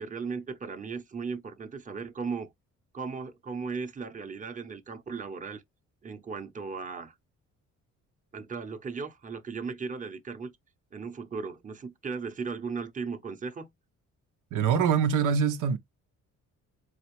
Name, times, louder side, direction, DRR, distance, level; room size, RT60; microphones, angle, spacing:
voice 1, 0.0-2.5 2.9-5.6 6.0-7.1 8.3-10.6 10.9-13.7, right 5 dB, 25° right, 0.8 m, -36 dB
voice 2, 14.5-15.8, right 7 dB, 90° right, 0.7 m, -24 dB
4.0 x 2.9 x 3.0 m
cardioid pair, 90°, 30 cm